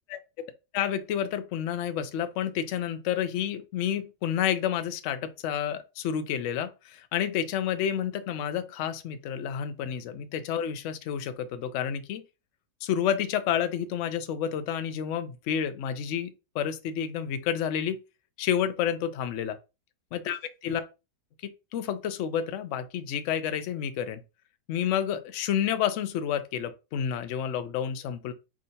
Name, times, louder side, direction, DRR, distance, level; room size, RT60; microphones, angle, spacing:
voice 1, 0.7-12.2 12.8-18.0 18.4-19.6 20.1-20.8 21.4-24.2 24.7-28.3, left 9 dB, 70° left, 0.7 m, -30 dB
4.3 x 3.7 x 2.7 m
omnidirectional pair, 1.8 m